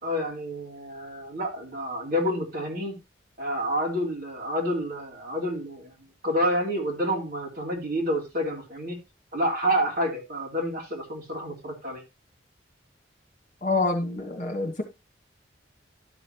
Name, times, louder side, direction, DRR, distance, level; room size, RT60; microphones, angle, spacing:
voice 1, 0.0-3.0 3.4-5.9 6.2-9.0 9.3-12.0, equal, 50° right, -2 dB, 3.2 m, -28 dB
voice 2, 13.6-14.8, left 3 dB, 40° left, 3 dB, 2.3 m, -26 dB
12.0 x 6.3 x 3.0 m, 0.25 s
head